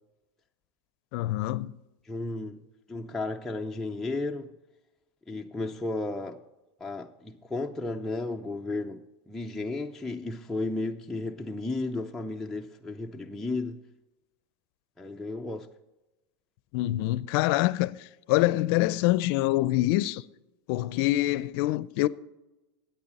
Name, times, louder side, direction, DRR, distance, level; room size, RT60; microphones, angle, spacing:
voice 1, 1.1-1.7 16.7-17.9 18.3-20.2 20.7-22.1, left 17 dB, 55° left, 0.5 m, -25 dB
voice 2, 2.1-2.6 2.9-4.5 5.3-6.4 6.8-13.8 15.0-15.7, left 2 dB, 5° left, 0.4 m, -33 dB
14.0 x 9.3 x 4.1 m
supercardioid pair, 135°, 15 cm